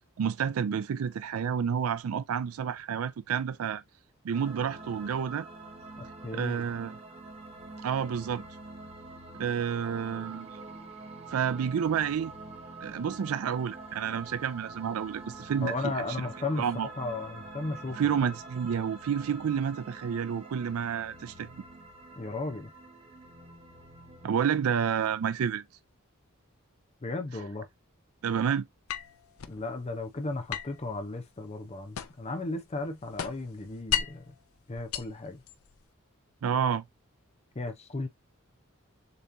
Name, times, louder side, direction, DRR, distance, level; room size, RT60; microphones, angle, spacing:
voice 1, 0.2-3.8 4.2-5.5 6.3-7.0 7.8-8.4 9.4-10.6 11.3-12.3 12.8-16.3 16.6-16.9 18.0-21.5 24.2-25.6 28.2-28.7 36.4-36.8, right 7 dB, 85° right, 0.4 m, -30 dB
sound 1, 4.3-24.3, right 3 dB, 30° right, 1.1 m, -46 dB
voice 2, 6.0-6.7 15.6-16.7 17.0-18.0 22.2-22.7 27.0-27.7 29.5-34.3 34.7-35.4 37.5-38.1, left 3 dB, 30° left, 0.6 m, -35 dB
sound 2, 28.9-29.6 30.5-32.4 32.7-34.3 34.8-35.8, left 10 dB, 85° left, 0.5 m, -35 dB
6.8 x 3.0 x 2.6 m
head